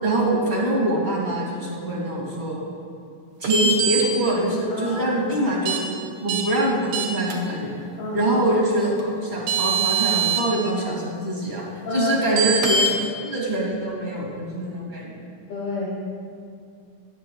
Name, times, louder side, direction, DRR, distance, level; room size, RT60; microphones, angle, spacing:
voice 1, 0.0-2.6 3.4-5.8 6.2-7.7 8.1-11.6 11.9-12.9 13.2-15.1, right 1 dB, 45° right, -5 dB, 0.6 m, -24 dB
sound 1, 3.4-4.0 5.7-5.8 6.3-6.4 6.9-7.3 9.0-9.1 9.5-10.4 12.4-12.9, right 4 dB, 65° right, 1.5 m, -22 dB
voice 2, 4.7-5.1 8.0-8.3 11.9-12.3 15.5-15.9, left 3 dB, 60° left, -5 dB, 2.1 m, -29 dB
20.0 x 7.4 x 2.3 m, 2.4 s
omnidirectional pair, 3.9 m